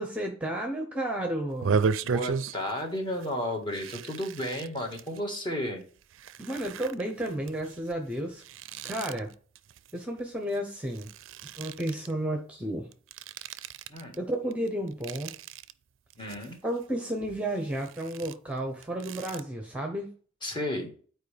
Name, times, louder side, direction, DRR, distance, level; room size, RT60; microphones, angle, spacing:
voice 1, 0.0-1.8 6.4-8.4 8.8-9.3 9.9-11.1 11.6-12.9 14.2-15.3 16.6-20.1, right 1 dB, 5° right, 3 dB, 0.8 m, -32 dB
sound 1, 1.5-2.8 3.1-3.3 3.7-5.2 5.8-10.6 10.8-12.1 12.9-14.2 14.5-15.7 16.1-16.8 17.2-19.4, right 5 dB, 70° right, 0.4 m, -35 dB
voice 2, 2.0-5.8 13.9-14.2 16.2-16.6 20.4-20.9, left 1 dB, 25° left, 2 dB, 1.5 m, -33 dB
9.4 x 4.5 x 3.4 m, 0.43 s
head